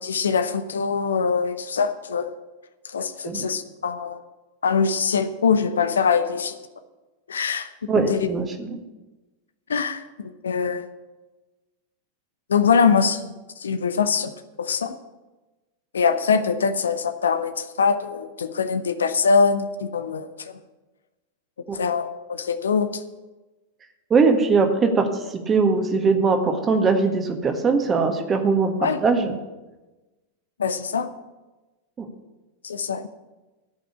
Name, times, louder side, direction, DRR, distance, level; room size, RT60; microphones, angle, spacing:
voice 1, 0.0-2.3 2.8-4.2 4.6-6.6 7.3-8.3 9.7-10.9 12.5-14.3 14.6-14.9 15.9-20.6 21.7-23.0 28.8-29.0 30.6-31.1 32.6-33.1, left 5 dB, 70° left, 11 dB, 0.8 m, -23 dB
voice 2, 7.9-8.8 21.7-21.8 24.1-29.4 32.0-32.1, right 4 dB, 20° right, 5 dB, 1.7 m, -21 dB
14.0 x 6.1 x 8.5 m, 1.1 s
figure-of-eight pair, 90°, 0 cm